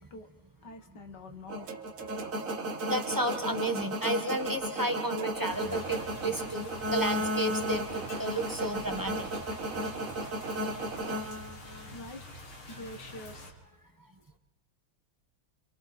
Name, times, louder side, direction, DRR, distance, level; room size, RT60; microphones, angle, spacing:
voice 1, 0.6-1.7 11.9-12.2 12.7-13.5, left 2 dB, 55° left, 6 dB, 2.2 m, -45 dB
sound 1, 1.5-11.9, right 1 dB, 40° right, 1.8 m, -34 dB
sound 2, 1.7-6.4 7.4-7.5, right 6 dB, 75° right, 2.2 m, -46 dB
voice 2, 2.9-9.3, right 1 dB, 10° right, 5 dB, 1.0 m, -32 dB
sound 3, 5.5-13.5, left 1 dB, 75° left, 4.3 m, -46 dB
29.0 x 26.5 x 4.4 m, 1.2 s
omnidirectional pair, 2.3 m